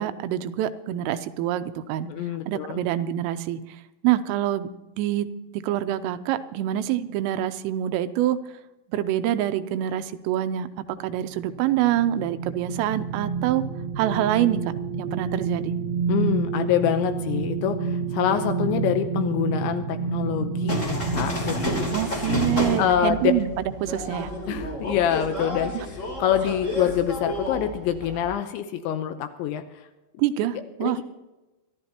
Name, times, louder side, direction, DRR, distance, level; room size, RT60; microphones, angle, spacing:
voice 1, 0.0-2.1 2.5-3.6 4.0-4.7 5.0-5.3 5.5-8.4 8.9-10.7 11.0-13.6 14.0-14.6 15.0-15.7 21.9-24.3 25.7-25.9 30.2-31.0, right 12 dB, 90° right, 11 dB, 3.3 m, -25 dB
voice 2, 2.1-2.8 16.1-21.7 22.8-23.3 24.5-29.6 30.8-31.0, left 10 dB, 80° left, 8 dB, 2.9 m, -25 dB
sound 1, 11.1-24.0 24.4-24.6, right 6 dB, 65° right, 2.5 m, -30 dB
sound 2, 20.7-28.3, left 1 dB, 20° left, 2.5 m, -30 dB
24.5 x 13.0 x 2.9 m, 1.0 s
omnidirectional pair, 5.7 m